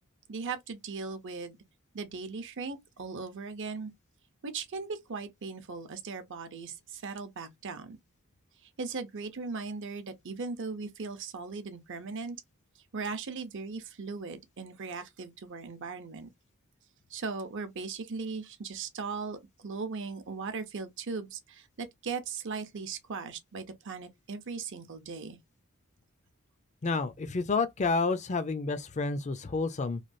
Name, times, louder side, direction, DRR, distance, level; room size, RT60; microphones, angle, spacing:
voice 1, 0.3-1.6 1.9-3.9 4.4-8.0 8.8-12.4 12.9-16.3 17.1-25.4, right 4 dB, 60° right, 0.7 m, -38 dB
voice 2, 26.8-30.0, left 4 dB, 35° left, 0.5 m, -29 dB
3.1 x 2.3 x 2.6 m
head